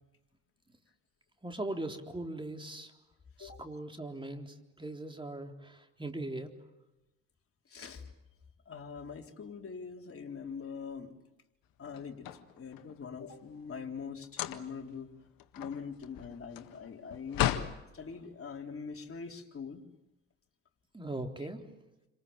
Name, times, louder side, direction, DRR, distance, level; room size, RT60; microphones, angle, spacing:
voice 1, 1.4-2.9 3.4-6.5 20.9-21.7, right 2 dB, 10° right, 4 dB, 3.9 m, -40 dB
voice 2, 7.7-8.1 8.7-11.1 11.8-12.3 12.5-15.1 15.6-17.5 17.9-19.8, left 6 dB, 35° left, 2 dB, 3.9 m, -43 dB
sound 1, 11.9-13.0 14.2-14.9 15.3-17.8, left 12 dB, 60° left, 1.8 m, -35 dB
29.0 x 26.5 x 7.4 m, 1.0 s
hypercardioid pair, 55°, 39 cm